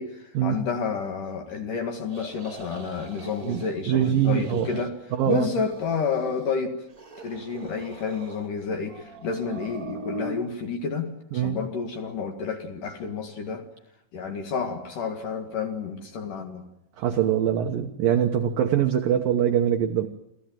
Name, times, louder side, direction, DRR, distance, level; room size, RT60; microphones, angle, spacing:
voice 1, 0.0-4.9 5.3-6.8 7.2-13.6 14.1-16.6, left 5 dB, 55° left, 5 dB, 2.7 m, -30 dB
sound 1, 2.1-3.7 4.0-4.9 5.2-6.5 6.9-8.5 8.8-10.4, right 2 dB, 30° right, 1.5 m, -41 dB
voice 2, 3.4-4.8 5.1-5.5 11.3-11.6 17.0-20.1, right 10 dB, 80° right, 7 dB, 2.0 m, -23 dB
27.5 x 17.0 x 9.1 m, 0.81 s
omnidirectional pair, 5.7 m